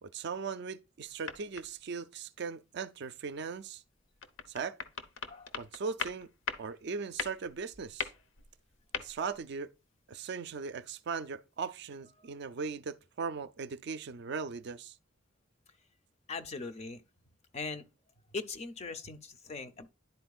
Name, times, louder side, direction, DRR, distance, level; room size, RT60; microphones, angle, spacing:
voice 1, 0.0-3.8 4.5-4.8 5.6-6.3 6.6-8.1 9.0-9.7 10.1-14.9, right 5 dB, 55° right, 0.4 m, -39 dB
sound 1, 1.1-1.8 4.1-6.8 7.1-9.4, left 6 dB, 70° left, 0.8 m, -41 dB
voice 2, 16.3-17.0 17.5-17.8 18.3-19.9, left 4 dB, 35° left, 0.6 m, -40 dB
11.0 x 4.3 x 2.4 m
head